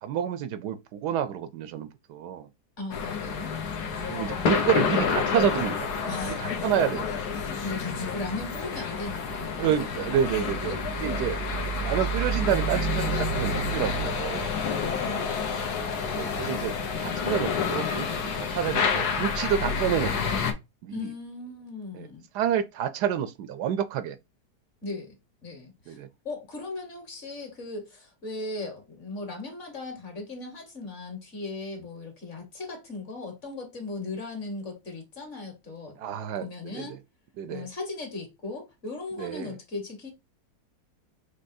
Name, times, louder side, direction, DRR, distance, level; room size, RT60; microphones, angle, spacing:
voice 1, 0.0-2.5 4.1-5.9 6.3-7.1 9.6-11.4 11.8-14.5 16.0-18.1 18.4-20.3 20.8-21.1 21.9-22.1 22.3-24.2 25.9-26.1 36.0-36.9 37.4-37.7 39.2-39.5, right 9 dB, 80° right, 1.2 m, -29 dB
voice 2, 2.8-3.5 6.0-6.7 7.3-10.8 14.8-15.7 20.9-22.2 24.8-25.2 25.4-26.0 26.2-36.0 36.4-37.0 37.5-40.1, left 3 dB, 45° left, 1.8 m, -38 dB
sound 1, 2.9-20.5, left 4 dB, 70° left, 1.4 m, -29 dB
5.5 x 3.2 x 2.6 m
omnidirectional pair, 1.8 m